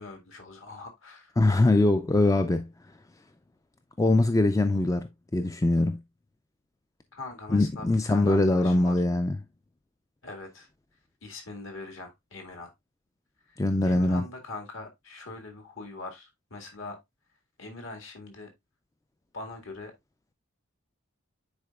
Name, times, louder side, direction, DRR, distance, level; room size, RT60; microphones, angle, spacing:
voice 1, 0.0-1.4 7.1-9.0 10.2-10.7 11.2-12.7 13.5-13.6 13.8-17.0 17.6-18.5 19.3-19.9, left 3 dB, 65° left, 1.9 m, -42 dB
voice 2, 1.4-2.7 4.0-6.0 7.5-9.4 13.6-14.2, left 2 dB, 15° left, 0.3 m, -23 dB
9.7 x 4.3 x 2.3 m
head